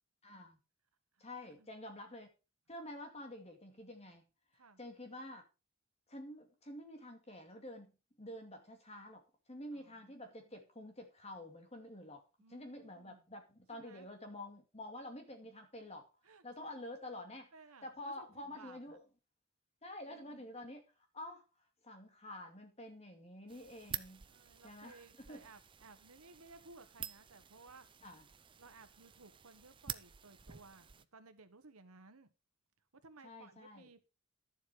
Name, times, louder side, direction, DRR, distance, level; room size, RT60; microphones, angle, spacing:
voice 1, 0.2-0.6 1.2-2.3 2.7-4.2 4.8-5.4 6.1-7.9 8.2-12.2 12.5-16.1 16.4-17.5 17.8-19.0 19.8-20.8 21.1-21.4 21.8-24.3 24.6-25.0 25.3-25.4 28.0-28.2 33.2-33.9, left 1 dB, 30° left, 2.4 m, -49 dB
voice 2, 1.1-1.7 4.5-4.8 9.7-10.5 12.4-13.2 13.7-14.1 16.2-16.8 17.5-19.0 20.0-20.5 24.3-27.9 28.6-32.3 32.9-34.0, right 3 dB, 85° right, 1.4 m, -59 dB
sound 1, 23.5-31.0, right 9 dB, 25° right, 0.5 m, -49 dB
11.5 x 7.4 x 5.0 m
head